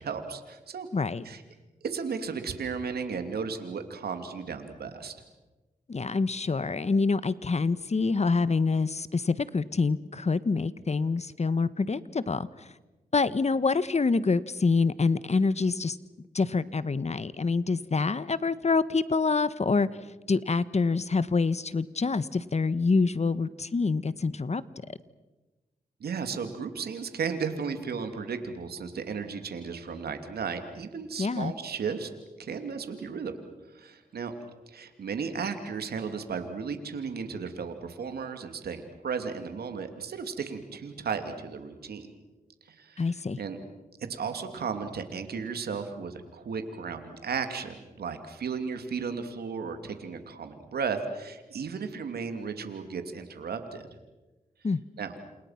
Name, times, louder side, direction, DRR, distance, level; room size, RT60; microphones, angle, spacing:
voice 1, 0.0-0.9 1.2-1.4 1.8-5.2 26.0-32.1 32.4-33.4 33.7-34.3 34.7-42.1 42.6-43.0 43.4-43.6 44.0-53.9 55.0-55.1, right 5 dB, 85° right, 7 dB, 2.8 m, -34 dB
voice 2, 0.9-1.2 5.9-12.7 13.1-16.0 16.3-19.9 20.3-24.6 31.2-31.5 43.0-43.4 54.6-54.8, left 4 dB, 45° left, 16 dB, 1.3 m, -26 dB
30.0 x 28.5 x 5.9 m, 1.1 s
cardioid pair, 50°, 16 cm